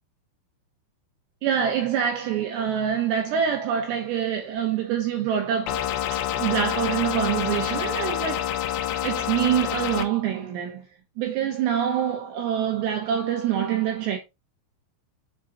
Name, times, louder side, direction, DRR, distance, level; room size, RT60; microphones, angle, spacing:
voice 1, 1.4-8.5 9.0-10.8 11.2-14.2, right 9 dB, 85° right, 2.5 m, -25 dB
sound 1, 5.7-10.1, left 11 dB, 85° left, 2.4 m, -27 dB
7.5 x 3.8 x 3.9 m
omnidirectional pair, 5.9 m